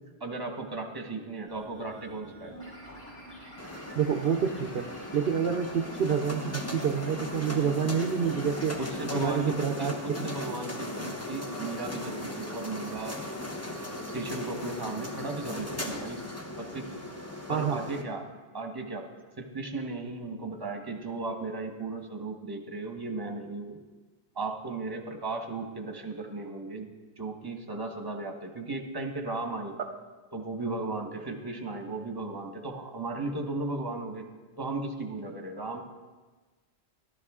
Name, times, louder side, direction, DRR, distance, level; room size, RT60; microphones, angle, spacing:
voice 1, 0.2-2.5 5.5-5.6 8.8-13.2 14.1-16.2 16.6-16.9 17.5-18.3 18.5-19.1 19.4-23.8 24.3-26.9 27.2-29.7 30.3-34.3 34.6-35.8, right 3 dB, 20° right, 3 dB, 1.1 m, -36 dB
sound 1, 1.5-9.5, equal, 40° left, 4.9 m, -47 dB
sound 2, 3.6-18.0, left 1 dB, 15° left, 0.8 m, -38 dB
voice 2, 3.9-8.8 9.2-10.3 17.5-17.8, right 7 dB, 65° right, 5 dB, 0.8 m, -28 dB
14.0 x 12.0 x 3.6 m, 1.3 s
omnidirectional pair, 1.1 m